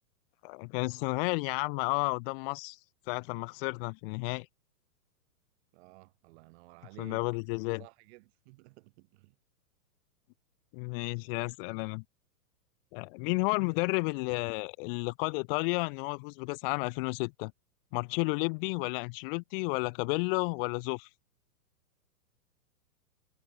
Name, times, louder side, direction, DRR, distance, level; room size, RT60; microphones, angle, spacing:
voice 1, 0.4-2.8 3.1-4.5 7.0-7.8 10.7-12.0 12.9-17.5 17.9-21.1, left 31 dB, 35° left, 1.5 m, -32 dB
voice 2, 5.7-7.3 7.8-9.4, right 26 dB, 40° right, 4.9 m, -54 dB
hypercardioid pair, 140°, 48 cm